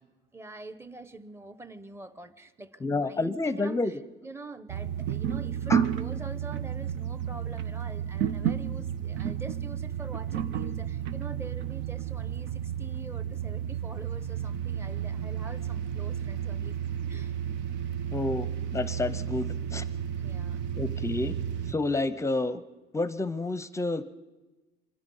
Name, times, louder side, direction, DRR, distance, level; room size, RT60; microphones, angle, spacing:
voice 1, 0.3-17.4 20.2-20.6, right 3 dB, 15° right, 13 dB, 0.8 m, -45 dB
voice 2, 2.8-3.9 5.7-5.8 18.1-18.5 18.7-19.8 20.8-21.3 21.7-22.6 22.9-24.0, left 2 dB, 15° left, 14 dB, 0.6 m, -29 dB
sound 1, 4.7-21.7, right 9 dB, 85° right, 0.8 m, -32 dB
25.0 x 21.5 x 5.5 m, 1.2 s
cardioid pair, 140°, 18 cm